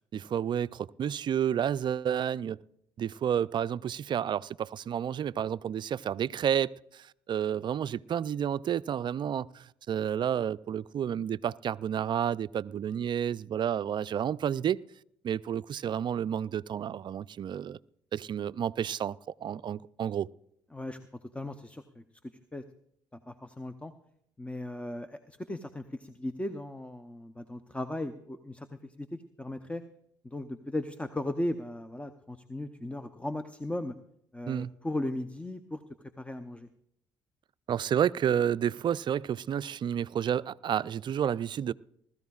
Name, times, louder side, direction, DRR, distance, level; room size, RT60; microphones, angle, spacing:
voice 1, 0.0-2.6 3.0-14.8 15.2-17.8 18.1-19.2 19.4-20.3 34.5-34.7 37.7-41.7, right 9 dB, 45° right, 0.4 m, -30 dB
voice 2, 21.3-22.6 23.3-23.9 24.4-29.8 30.2-34.0 34.3-35.8 36.2-36.7, left 1 dB, 10° left, 0.7 m, -37 dB
20.0 x 13.5 x 2.4 m
hypercardioid pair, 65°, 11 cm